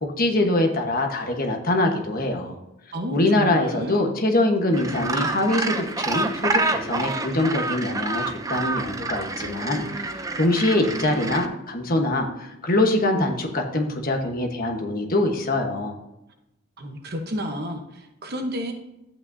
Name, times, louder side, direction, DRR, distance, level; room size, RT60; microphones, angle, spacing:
voice 1, 0.0-2.6 3.1-16.0, left 1 dB, 40° left, 3 dB, 1.2 m, -23 dB
voice 2, 2.9-4.0 16.8-18.7, equal, 45° right, 3 dB, 1.0 m, -31 dB
Gull seagull, 4.7-11.4, right 2 dB, 15° right, 0.5 m, -28 dB
12.0 x 8.6 x 2.7 m, 0.91 s
head